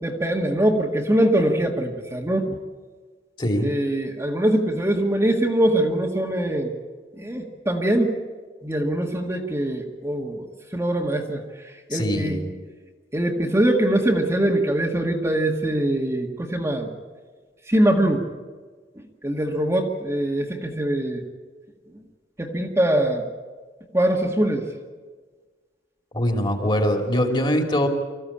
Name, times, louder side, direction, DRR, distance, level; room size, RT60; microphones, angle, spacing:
voice 1, 0.0-2.5 3.6-6.7 7.2-8.2 8.6-10.4 10.7-11.4 11.9-12.4 13.1-16.9 17.7-18.2 19.2-21.2 22.4-23.2 23.9-24.6, right 1 dB, 15° right, 0 dB, 1.7 m, -22 dB
voice 2, 3.4-3.7 11.9-12.5 26.1-27.9, equal, 25° left, 3 dB, 2.9 m, -22 dB
25.0 x 15.0 x 8.7 m, 1.4 s
head